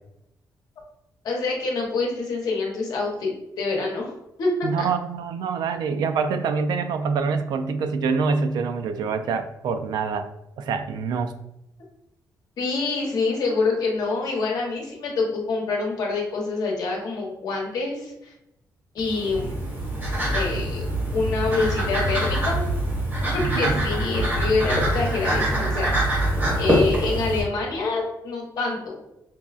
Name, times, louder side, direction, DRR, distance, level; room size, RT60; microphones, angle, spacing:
voice 1, 1.2-4.1 4.4-4.9 12.6-18.3 18.9-19.6 20.3-20.9 21.1-22.6 23.2-26.2 26.6-28.9, left 3 dB, 65° left, 0 dB, 0.9 m, -26 dB
voice 2, 4.6-10.3 10.6-11.3 23.5-23.8, right 5 dB, 90° right, 8 dB, 0.3 m, -25 dB
sound 1, 19.0-27.4, right 1 dB, 30° right, 1.4 m, -24 dB
5.3 x 2.3 x 2.3 m, 0.86 s
wide cardioid pair, 165°, 7 cm